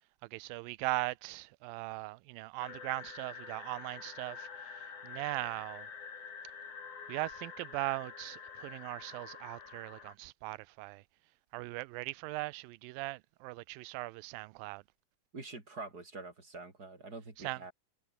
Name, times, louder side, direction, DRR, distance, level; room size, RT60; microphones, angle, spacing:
voice 1, 0.2-5.9 7.1-11.0 11.5-14.8 17.4-17.6, right 21 dB, 85° right, 2.3 m, -39 dB
sound 1, 2.6-10.2, left 6 dB, 60° left, 5.0 m, -47 dB
voice 2, 15.3-17.7, right 3 dB, 25° right, 4.6 m, -46 dB
omnidirectional pair, 4.0 m